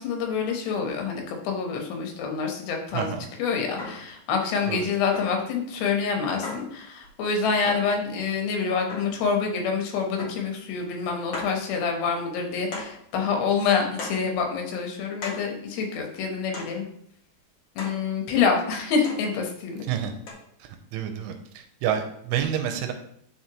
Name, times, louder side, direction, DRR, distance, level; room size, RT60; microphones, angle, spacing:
voice 1, 0.0-16.8 17.8-19.9, left 5 dB, 90° left, 2 dB, 3.4 m, -27 dB
voice 2, 2.9-3.3 4.7-4.9 19.9-20.1 20.6-22.9, right 9 dB, 85° right, 6 dB, 2.7 m, -29 dB
sound 1, 3.8-4.1 5.1-5.5 6.4-6.8 7.7-8.0 8.9-9.3 10.2-10.5 10.8-10.9 11.3-11.6 12.7-13.0 14.0-14.3 15.2-15.5 16.5-16.8 17.8-18.1 19.0-19.3 20.3-20.4, left 3 dB, 55° left, 1.8 m, -36 dB
9.4 x 5.4 x 3.0 m, 0.72 s
omnidirectional pair, 4.7 m